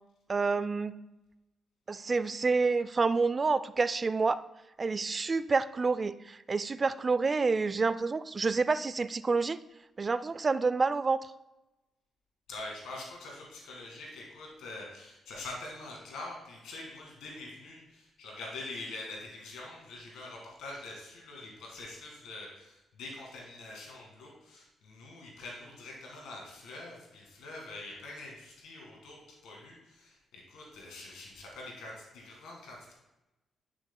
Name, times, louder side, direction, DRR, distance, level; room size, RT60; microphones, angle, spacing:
voice 1, 0.3-1.0 1.9-4.4 4.8-9.6 10.0-11.2, right 4 dB, 40° right, 16 dB, 0.3 m, -28 dB
voice 2, 12.5-32.9, left 2 dB, 80° left, -2 dB, 1.8 m, -45 dB
10.0 x 6.0 x 2.2 m, 0.99 s
supercardioid pair, 50°, 0 cm